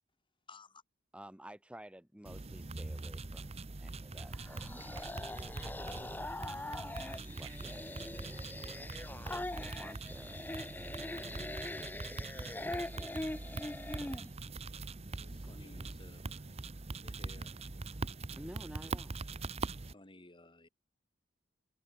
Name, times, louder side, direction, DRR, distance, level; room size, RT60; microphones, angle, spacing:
voice 1, 0.5-0.8 15.5-16.2 17.0-17.5 19.9-20.7, left 2 dB, 25° left, 2.9 m, -56 dB
voice 2, 1.1-5.4 5.9-6.1 6.4-9.3 9.6-10.6 11.1-11.5 12.1-13.7 14.0-14.2 18.4-19.2, right 1 dB, 5° right, 1.1 m, -54 dB
sound 1, 2.3-19.9, right 3 dB, 35° right, 0.8 m, -43 dB
sound 2, 2.9-10.0, right 9 dB, 80° right, 6.0 m, -63 dB
sound 3, 4.3-14.3, left 2 dB, 10° left, 0.5 m, -42 dB
voice 3, 14.9-17.0, left 2 dB, 65° left, 5.9 m, -68 dB
head